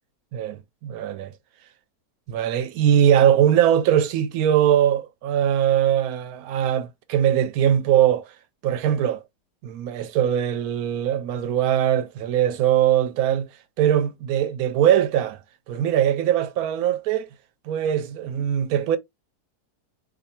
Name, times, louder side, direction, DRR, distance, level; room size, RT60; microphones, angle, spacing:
voice 1, 0.3-1.3 2.3-8.3 8.6-9.2 9.6-13.5 13.8-15.4 15.7-17.3 17.7-19.0, right 10 dB, 70° right, 1.0 m, -21 dB
2.6 x 2.6 x 4.1 m
omnidirectional pair, 1.7 m